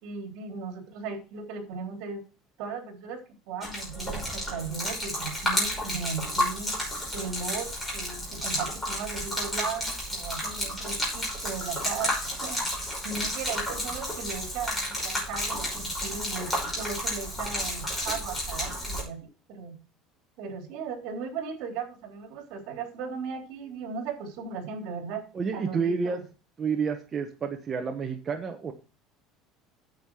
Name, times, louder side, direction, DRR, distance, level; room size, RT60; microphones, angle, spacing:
voice 1, 0.0-2.2 2.6-3.2 3.5-6.7 7.1-19.8 20.4-25.2 25.5-26.2, right 5 dB, 65° right, 3 dB, 3.4 m, -37 dB
Gurgling / Liquid, 3.6-19.0, left 1 dB, 10° left, 5.6 m, -31 dB
voice 2, 25.3-26.2 26.6-28.7, right 5 dB, 25° right, 4 dB, 1.0 m, -29 dB
9.3 x 7.4 x 4.8 m, 0.34 s
cardioid pair, 150°, 0 cm